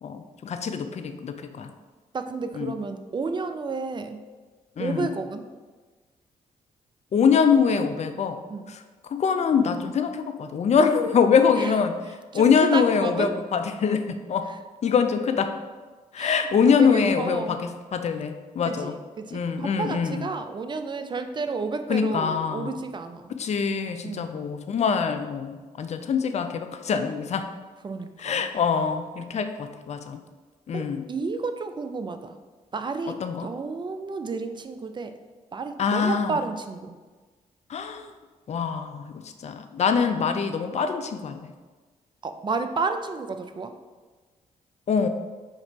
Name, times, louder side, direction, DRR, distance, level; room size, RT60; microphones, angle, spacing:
voice 1, 0.0-1.7 2.6-2.8 4.8-5.1 7.1-8.4 8.7-11.9 12.3-14.5 14.8-15.5 16.1-17.6 17.9-18.9 19.3-20.3 21.9-22.8 23.3-27.5 28.2-30.2 30.7-31.1 33.1-33.5 35.8-36.4 37.7-38.1 38.5-41.5 44.9-45.1, left 6 dB, 40° left, 7 dB, 0.4 m, -24 dB
voice 2, 2.1-4.2 4.8-5.4 8.5-8.7 11.5-11.7 12.3-13.3 14.5-14.6 16.2-17.6 18.7-23.3 24.0-24.3 27.8-28.5 30.7-32.4 32.7-35.1 35.5-37.0 42.2-43.7, right 4 dB, 25° right, 8 dB, 0.4 m, -31 dB
5.1 x 2.5 x 3.0 m, 1.3 s
hypercardioid pair, 40°, 18 cm